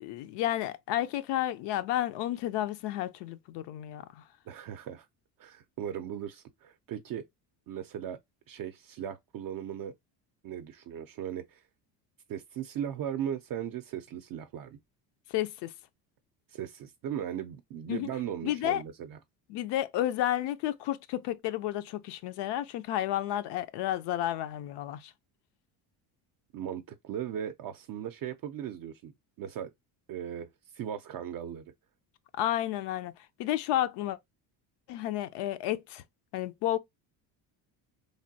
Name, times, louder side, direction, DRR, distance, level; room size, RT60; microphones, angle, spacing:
voice 1, 0.0-4.2 15.3-15.7 17.9-18.1 18.4-18.8 19.5-25.1 32.4-33.1 33.4-34.2 34.9-36.0 36.3-36.8, left 13 dB, 65° left, 0.5 m, -31 dB
voice 2, 4.5-5.1 5.4-7.3 7.7-8.2 8.5-9.9 10.4-11.6 12.3-14.8 16.5-19.2 26.5-29.1 29.4-29.7 30.1-31.7, right 9 dB, 50° right, 0.5 m, -38 dB
3.2 x 2.2 x 2.6 m
cardioid pair, 100°, 44 cm